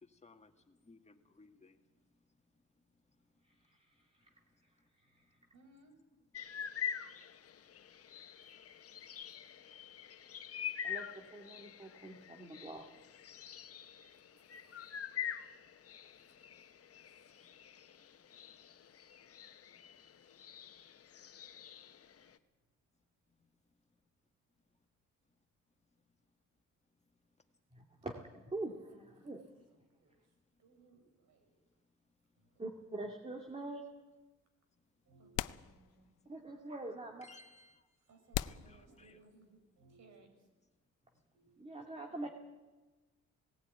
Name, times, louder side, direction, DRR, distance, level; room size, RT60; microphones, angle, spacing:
voice 1, 0.0-1.9 19.7-19.8 37.2-37.9 38.4-39.2, left 3 dB, 20° left, 5 dB, 2.0 m, -61 dB
voice 2, 3.6-4.3 4.6-4.7 5.0-5.4 10.8-12.9 27.7-29.4 32.6-33.8 36.3-37.3 41.6-42.3, right 2 dB, 20° right, 2 dB, 2.3 m, -45 dB
voice 3, 5.5-5.9 13.6-13.8 14.6-14.9 28.6-29.4 29.9-30.2 30.6-31.5 32.4-32.6 35.0-36.1 38.1-40.5 41.3-42.3, right 2 dB, 65° right, 6 dB, 5.5 m, -64 dB
sound 1, 6.3-22.4, left 9 dB, 50° left, 1.2 m, -46 dB
sound 2, 33.5-33.6 34.7-34.8 35.3-36.3 36.6-36.7 37.4-37.5 38.3-39.5, left 15 dB, 85° left, 0.6 m, -41 dB
18.0 x 16.0 x 9.2 m, 1.2 s
cardioid pair, 90°, 30 cm